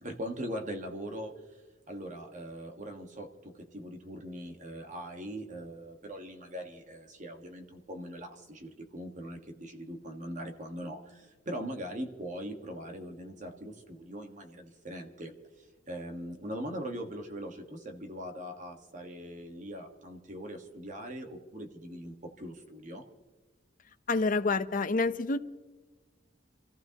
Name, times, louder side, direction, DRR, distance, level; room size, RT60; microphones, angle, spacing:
voice 1, 0.0-1.6 1.9-23.0, equal, 40° right, 4 dB, 1.5 m, -41 dB
voice 2, 24.1-25.4, left 3 dB, 45° left, 11 dB, 0.7 m, -28 dB
27.5 x 15.0 x 2.9 m, 1.2 s
head